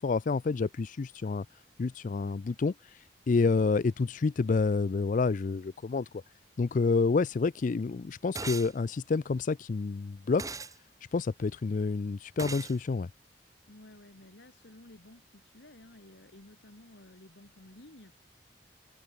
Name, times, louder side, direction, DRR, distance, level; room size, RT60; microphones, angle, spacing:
voice 1, 0.0-1.5 1.8-2.7 3.3-6.2 6.6-10.6 11.1-13.1, left 4 dB, 50° left, 0.4 m, -28 dB
sound 1, 8.3-8.7 10.4-10.7 12.4-12.8, right 4 dB, 20° right, 1.6 m, -38 dB
voice 2, 13.7-18.1, left 1 dB, 85° left, 2.2 m, -53 dB
head